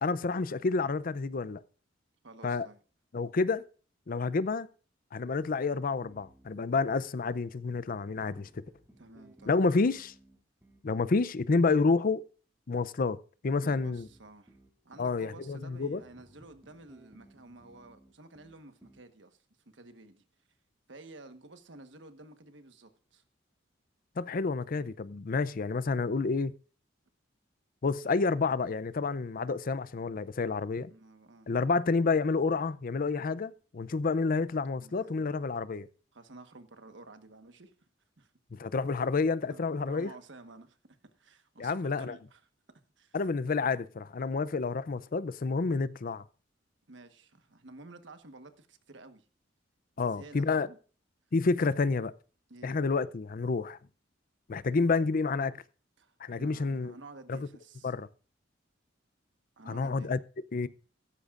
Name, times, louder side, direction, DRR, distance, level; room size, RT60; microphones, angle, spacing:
voice 1, 0.0-1.6 2.4-2.7 3.1-3.6 4.1-4.7 5.1-8.5 9.5-10.1 10.8-12.3 12.7-14.1 15.0-16.0 24.2-26.5 27.8-30.9 31.5-35.9 38.5-40.1 41.6-42.1 43.1-46.2 50.0-50.7 51.3-52.1 52.6-53.8 54.5-55.6 56.2-56.9 57.3-57.5 57.8-58.1 59.7-60.2 60.5-60.7, left 4 dB, 50° left, 0.5 m, -29 dB
voice 2, 2.2-2.8 8.4-8.5 8.9-9.6 13.5-14.6 14.8-19.4 19.7-20.2 20.9-23.2 30.9-31.5 34.8-35.4 36.1-37.9 38.2-38.3 39.5-42.4 43.0-43.2 46.9-49.3 50.0-50.8 52.5-52.8 56.0-58.0 59.6-60.1, right 2 dB, 70° right, 1.3 m, -52 dB
sound 1, 6.0-7.4 8.2-11.4 13.8-15.2 15.9-19.1, right 1 dB, 10° right, 2.6 m, -60 dB
15.5 x 13.5 x 2.5 m
head